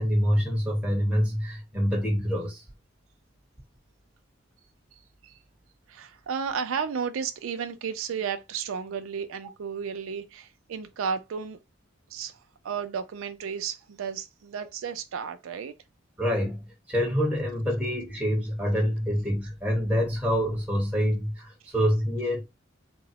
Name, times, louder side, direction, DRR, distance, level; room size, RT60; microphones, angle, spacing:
voice 1, 0.0-2.6 16.2-22.5, equal, 5° right, 1.0 m, -26 dB
voice 2, 5.9-11.6 12.1-12.4 12.6-15.7, right 6 dB, 90° right, 0.4 m, -33 dB
3.7 x 2.0 x 2.9 m
head